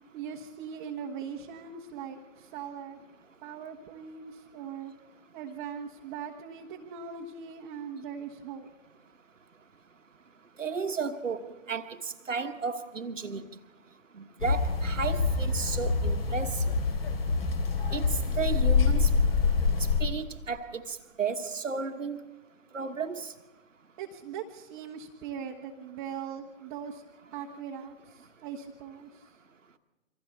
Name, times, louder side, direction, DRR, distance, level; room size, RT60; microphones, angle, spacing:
voice 1, 0.1-3.0 3.4-4.9 5.3-8.7 24.0-27.0 27.3-29.2, right 7 dB, 20° right, -1 dB, 1.1 m, -40 dB
voice 2, 10.6-13.4 14.1-16.7 17.9-19.1 20.0-22.2 22.7-23.3, right 5 dB, 70° right, 9 dB, 1.4 m, -33 dB
sound 1, 14.4-20.0, left 4 dB, 50° left, 2.8 m, -26 dB
27.5 x 25.0 x 4.0 m, 1.2 s
figure-of-eight pair, 130°, 39 cm